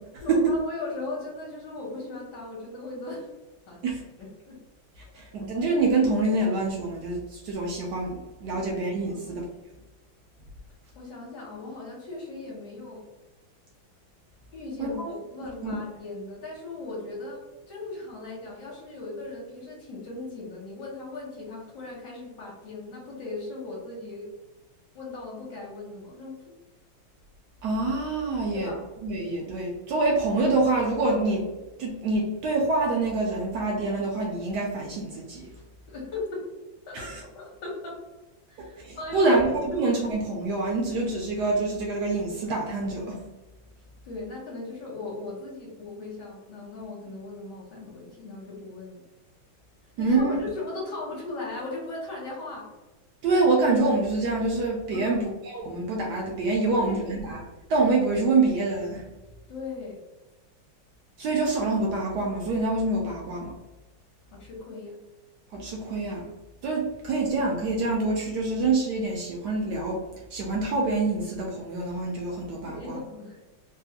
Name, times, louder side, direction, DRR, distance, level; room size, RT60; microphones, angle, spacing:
voice 1, 0.2-3.3 3.7-3.8 4.2-4.6 8.5-9.4 10.9-13.1 14.5-24.3 24.9-26.5 28.5-28.8 35.9-36.5 36.9-37.1 37.3-38.0 38.5-39.4 44.0-49.0 50.0-52.7 54.9-55.2 56.6-57.3 59.5-60.0 64.3-65.0 72.6-73.5, left 2 dB, 65° left, -3 dB, 1.3 m, -38 dB
voice 2, 5.1-9.4 14.8-15.1 15.6-15.8 27.6-28.7 29.0-31.5 31.8-35.5 36.9-37.2 38.6-43.2 50.0-50.4 53.2-57.4 57.7-59.0 61.2-63.5 65.5-66.3 66.6-70.0 70.3-73.0, right 3 dB, 75° right, -1 dB, 0.9 m, -26 dB
3.4 x 2.3 x 2.7 m, 1.1 s
omnidirectional pair, 2.2 m